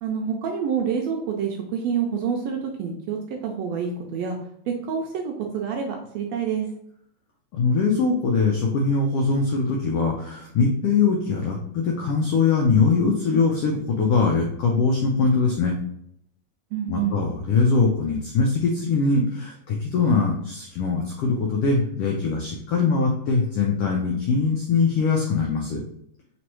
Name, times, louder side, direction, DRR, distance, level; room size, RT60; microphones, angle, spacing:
voice 1, 0.0-4.4 4.7-6.7 16.7-17.2, right 7 dB, 80° right, 1 dB, 1.5 m, -27 dB
voice 2, 7.5-15.8 16.9-25.8, left 4 dB, 85° left, 0 dB, 1.3 m, -22 dB
4.6 x 3.0 x 3.0 m, 0.71 s
omnidirectional pair, 3.4 m